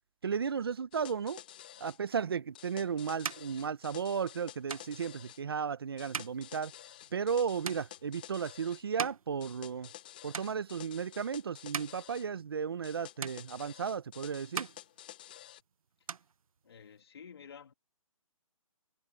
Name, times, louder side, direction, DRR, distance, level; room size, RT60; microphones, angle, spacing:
voice 1, 0.2-1.4 1.8-6.7 7.1-9.9 10.2-14.7, right 6 dB, 40° right, 0.8 m, -34 dB
sound 1, 0.9-2.0 2.5-5.4 6.0-8.8 9.4-12.3 12.8-15.6, left 13 dB, 15° left, 0.7 m, -51 dB
sound 2, 2.4-10.0 10.3-11.0 11.5-12.9 13.2-14.1 14.4-15.6 15.9-17.0, right 6 dB, 75° right, 0.7 m, -43 dB
voice 2, 16.6-17.7, left 7 dB, 45° left, 2.8 m, -51 dB
hypercardioid pair, 175°, 18 cm